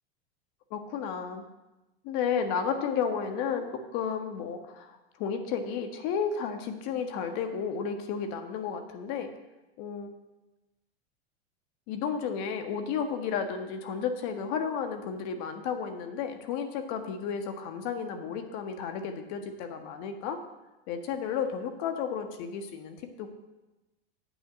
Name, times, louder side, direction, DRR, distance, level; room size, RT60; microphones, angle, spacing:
voice 1, 0.7-1.4 2.0-9.3 9.8-10.1 11.9-20.4 20.9-23.3, left 6 dB, 55° left, 6 dB, 1.5 m, -32 dB
9.2 x 5.8 x 7.9 m, 1.0 s
supercardioid pair, 110°, 32 cm